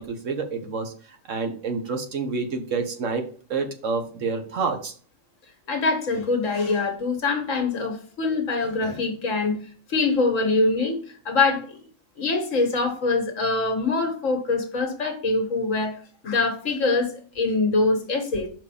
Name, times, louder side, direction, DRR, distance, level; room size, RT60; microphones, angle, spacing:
voice 1, 0.0-3.2 3.5-4.9, right 4 dB, 70° right, 5 dB, 1.5 m, -28 dB
voice 2, 5.7-9.6 9.9-11.8 12.2-16.0 16.2-18.5, left 3 dB, 70° left, 5 dB, 1.8 m, -24 dB
5.7 x 4.8 x 4.9 m, 0.43 s
omnidirectional pair, 1.4 m